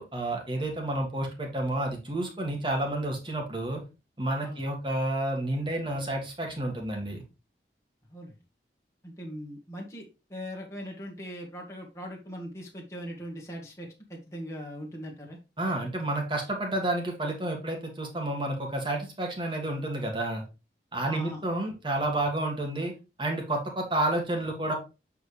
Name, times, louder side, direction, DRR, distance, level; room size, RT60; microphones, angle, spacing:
voice 1, 0.0-3.8 4.2-7.2 15.6-20.4 20.9-22.9 23.2-24.7, right 1 dB, 25° right, 1 dB, 1.8 m, -30 dB
voice 2, 9.0-15.4 21.0-21.4, equal, 15° left, -1 dB, 1.5 m, -40 dB
7.8 x 4.9 x 3.3 m, 0.29 s
head